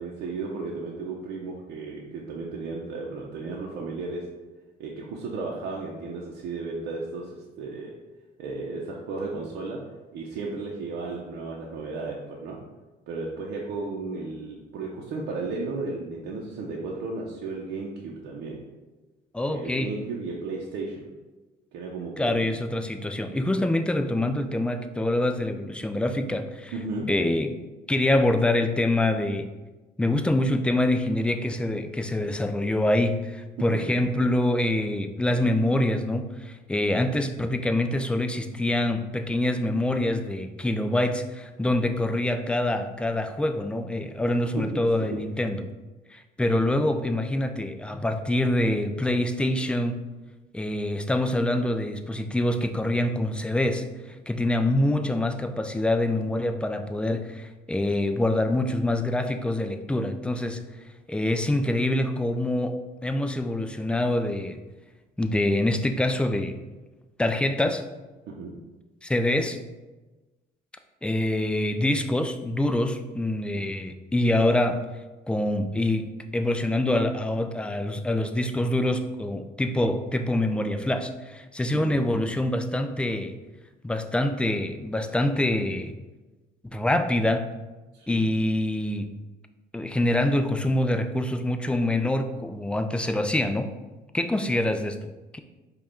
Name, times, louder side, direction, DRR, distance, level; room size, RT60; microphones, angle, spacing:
voice 1, 0.0-4.3 4.8-7.9 8.4-9.8 10.1-12.6 13.1-18.6 19.5-21.0 21.7-22.4 26.7-27.1 33.6-33.9 44.3-44.9 45.1-45.2 68.3-68.6 73.5-73.6 81.7-82.0 87.9-88.2, right 3 dB, 85° right, -3 dB, 0.7 m, -34 dB
voice 2, 19.3-19.9 22.2-26.7 27.1-27.6 27.9-29.5 30.0-45.7 46.1-50.0 50.5-53.9 54.3-60.6 61.1-64.6 65.2-66.6 67.2-67.9 69.0-69.6 71.0-74.8 75.3-76.1 76.3-83.3 83.8-85.9 86.6-87.5 88.1-89.1 89.7-93.7 94.1-95.4, left 1 dB, 5° left, 7 dB, 0.3 m, -25 dB
5.1 x 2.4 x 4.3 m, 1.2 s
cardioid pair, 110°, 17 cm